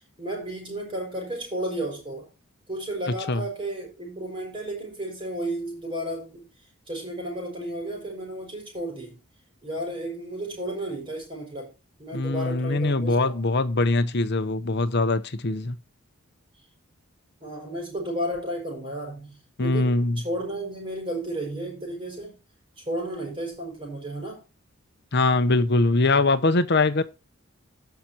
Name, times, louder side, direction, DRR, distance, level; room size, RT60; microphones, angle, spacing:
voice 1, 0.2-2.3 2.7-6.5 6.9-9.2 9.6-11.7 12.0-13.4 17.4-22.4 22.8-24.4, right 1 dB, 25° right, 5.9 m, -33 dB
voice 2, 12.1-15.8 19.6-20.2 25.1-27.0, left 3 dB, 50° left, 0.8 m, -22 dB
16.5 x 5.8 x 2.9 m
head